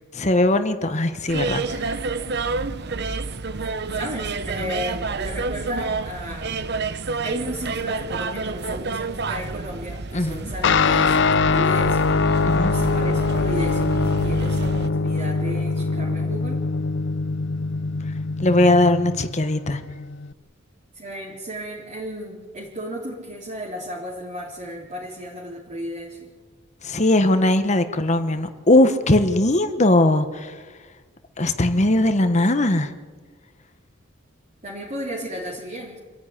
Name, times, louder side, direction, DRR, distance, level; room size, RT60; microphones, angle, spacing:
voice 1, 0.1-2.0 10.1-10.5 12.5-12.7 18.4-19.8 26.8-30.5 31.4-32.9, left 1 dB, 35° left, 9 dB, 1.2 m, -19 dB
sound 1, 1.3-14.9, right 3 dB, 55° right, 0.9 m, -29 dB
voice 2, 3.9-6.6 7.2-11.2 11.4-12.1 12.7-16.6 20.9-26.3 34.6-36.0, equal, 35° right, -5 dB, 3.8 m, -34 dB
Guitar, 10.6-20.3, left 4 dB, 60° left, 0.6 m, -23 dB
26.5 x 15.0 x 9.9 m, 1.5 s
head